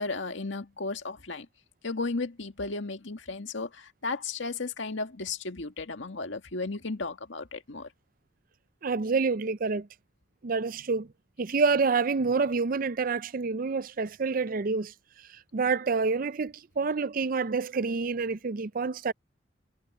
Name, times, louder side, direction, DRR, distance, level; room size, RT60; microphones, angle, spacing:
voice 1, 0.0-1.5 1.8-7.9, left 3 dB, 90° left, 1.9 m, -34 dB
voice 2, 8.8-9.9 10.4-11.1 11.4-14.9 15.5-19.1, right 4 dB, 50° right, 0.5 m, -27 dB
head